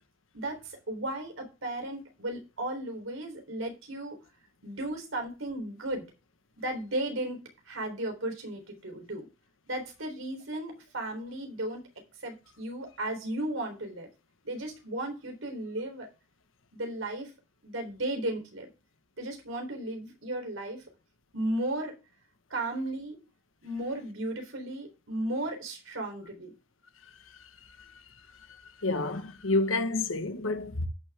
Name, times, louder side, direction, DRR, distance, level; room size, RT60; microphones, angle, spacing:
voice 1, 0.3-4.2 4.6-6.1 6.6-7.4 7.7-9.3 9.7-11.8 12.2-14.1 14.4-16.1 16.7-17.3 17.6-18.7 19.2-20.8 21.3-22.0 22.5-23.2 23.6-26.5, right 1 dB, 80° right, 3.8 m, -35 dB
voice 2, 27.2-30.9, left 2 dB, 85° left, 1.4 m, -31 dB
13.5 x 6.6 x 3.6 m
head